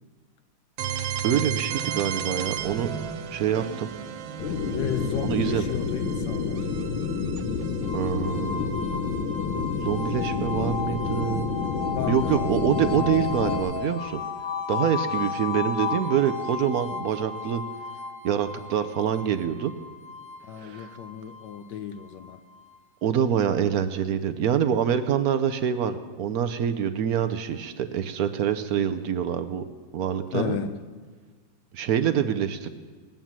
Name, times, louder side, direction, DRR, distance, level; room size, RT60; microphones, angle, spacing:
sound 1, 0.8-10.5, right 9 dB, 80° right, 1.5 m, -35 dB
voice 1, 1.2-2.9 3.3-3.9 5.2-5.6 7.9-8.8 9.8-11.4 12.1-14.2 14.7-17.6 18.2-19.7 20.6-20.9 23.0-29.6 29.9-30.6 31.7-32.7, right 9 dB, 65° right, 1.0 m, -25 dB
sound 2, 4.4-13.6, left 5 dB, 90° left, 1.9 m, -29 dB
voice 2, 4.7-6.7 11.9-12.8 20.4-22.4 30.3-30.8, left 8 dB, 70° left, 1.3 m, -33 dB
sound 3, 7.8-22.8, left 5 dB, 35° left, 0.8 m, -34 dB
19.5 x 9.2 x 7.4 m
omnidirectional pair, 2.1 m